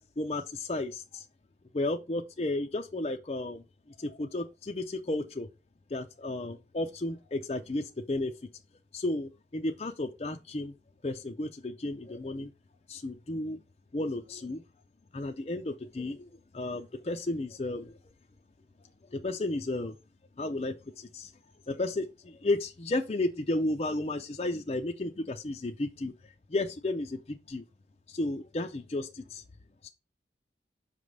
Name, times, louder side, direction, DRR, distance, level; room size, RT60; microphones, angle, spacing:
voice 1, 0.2-1.2 1.7-3.6 4.0-5.5 5.9-8.3 8.9-10.7 11.0-12.5 12.9-13.6 13.9-14.6 15.1-18.0 19.1-20.0 20.4-21.3 21.7-27.6 28.1-29.4 29.8-29.9, left 2 dB, 35° left, 0.5 m, -33 dB
5.8 x 3.2 x 5.2 m
head